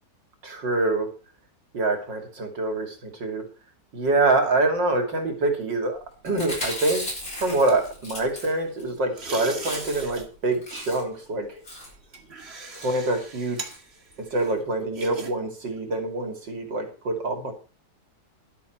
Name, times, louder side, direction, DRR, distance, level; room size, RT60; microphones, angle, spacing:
voice 1, 0.4-1.1 1.7-3.5 3.9-11.6 12.8-13.6 14.2-17.5, right 2 dB, 85° right, 5 dB, 3.5 m, -25 dB
Chewing mastication, 6.2-8.9 9.2-9.3 9.5-10.2 10.5-11.2 11.6-12.0 12.6-12.9 13.6-13.8 14.1-14.2 14.4-14.5, left 1 dB, 50° left, 8.0 m, -36 dB
sound 1, 7.2-8.7 9.1-10.3 10.5-10.8 11.5-15.3 15.6-15.9, right 3 dB, 35° right, 2.1 m, -40 dB
12.0 x 12.0 x 4.5 m, 0.35 s
omnidirectional pair, 1.9 m